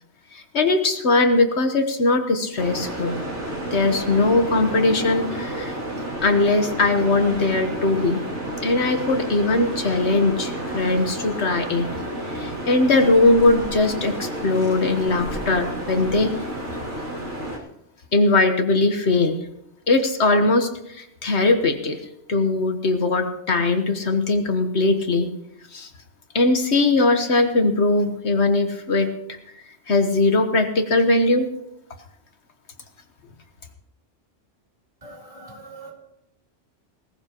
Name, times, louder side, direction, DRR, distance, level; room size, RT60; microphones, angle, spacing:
voice 1, 0.3-3.2 3.7-5.8 6.2-8.2 8.6-11.9 12.3-16.3 18.1-19.4 19.9-22.0 22.3-25.3 25.7-25.9 26.3-29.4 29.9-31.5, left 2 dB, 70° left, 6 dB, 1.5 m, -20 dB
sound 1, 2.6-17.6, right 1 dB, 75° right, 3.1 m, -31 dB
voice 2, 35.0-35.9, right 2 dB, 30° right, -1 dB, 3.5 m, -42 dB
20.0 x 17.0 x 3.0 m, 0.80 s
omnidirectional pair, 1.2 m